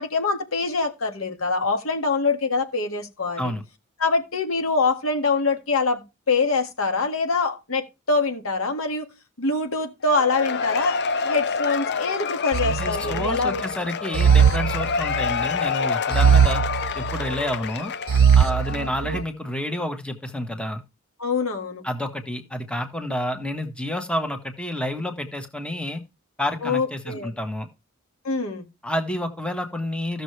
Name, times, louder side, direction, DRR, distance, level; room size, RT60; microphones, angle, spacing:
voice 1, 0.0-3.5 4.0-9.1 9.4-13.6 18.7-19.2 21.2-21.8 26.6-27.3 28.2-28.7, left 3 dB, 80° left, 1.7 m, -24 dB
Cheering / Applause / Crowd, 10.1-19.0, left 5 dB, 55° left, 0.6 m, -28 dB
sound 1, 12.5-13.5 14.1-15.4 16.1-17.4 18.1-19.2, right 7 dB, 75° right, 0.5 m, -20 dB
voice 2, 12.6-16.6 16.9-17.9 18.3-20.8 21.8-26.0 26.4-27.7 28.8-30.2, left 1 dB, 5° left, 1.2 m, -29 dB
14.0 x 6.7 x 3.2 m
head